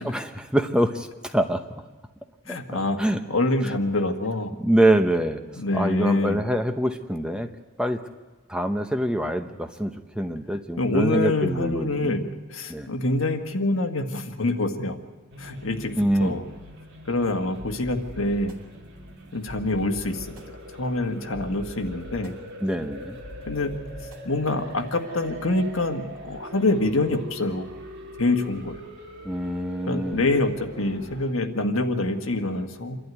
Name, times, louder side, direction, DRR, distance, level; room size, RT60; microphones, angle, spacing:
voice 1, 0.0-1.8 2.5-3.2 3.6-3.7 4.6-5.4 5.7-7.5 7.8-8.0 8.5-12.2 12.7-12.9 16.0-16.4 22.6-23.2 29.2-30.3, right 1 dB, 5° right, 6 dB, 0.8 m, -25 dB
voice 2, 2.5-3.0 3.3-4.5 5.5-6.4 10.8-15.0 15.4-16.4 17.0-18.6 19.3-20.3 20.7-22.3 23.5-23.7 24.2-27.7 28.2-28.8 29.8-33.0, left 2 dB, 70° left, 5 dB, 1.6 m, -26 dB
sound 1, 15.3-31.3, equal, 55° right, 3.3 m, -43 dB
sound 2, 17.5-25.1, left 1 dB, 80° right, 3.0 m, -45 dB
27.5 x 12.0 x 9.5 m, 1.3 s
head